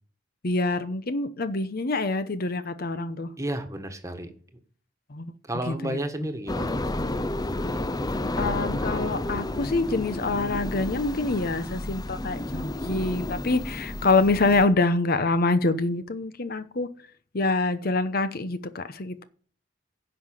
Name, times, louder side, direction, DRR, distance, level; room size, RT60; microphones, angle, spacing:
voice 1, 0.4-3.3 5.1-5.3 5.7-6.0 7.6-7.7 8.4-16.9 17.3-19.2, left 3 dB, 55° left, 0.9 m, -26 dB
voice 2, 3.4-4.3 5.5-6.8, right 1 dB, 15° right, 1.5 m, -31 dB
sound 1, 6.5-14.6, left 1 dB, 20° left, 0.6 m, -31 dB
11.0 x 5.8 x 8.9 m
head